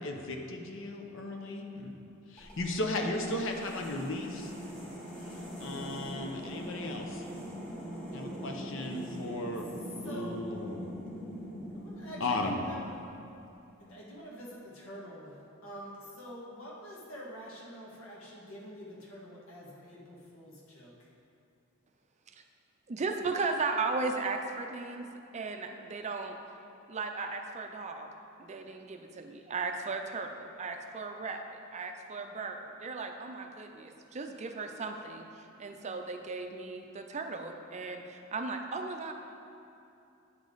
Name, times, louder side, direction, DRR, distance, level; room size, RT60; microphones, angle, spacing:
voice 1, 0.0-2.0 2.3-4.5 4.8-4.9 5.2-7.2 8.1-9.7 10.0-10.8 12.2-12.6, left 2 dB, 65° left, 3 dB, 0.8 m, -36 dB
sound 1, 2.4-13.5, equal, 5° left, 1.9 m, -42 dB
voice 2, 9.6-10.4 11.7-13.0 13.8-21.1 31.2-31.3, equal, 80° left, -5 dB, 1.8 m, -46 dB
voice 3, 22.9-25.1 25.3-26.4 26.9-28.1 28.4-35.3 35.6-39.1, right 4 dB, 35° right, 5 dB, 0.5 m, -36 dB
9.7 x 5.2 x 3.9 m, 2.7 s
head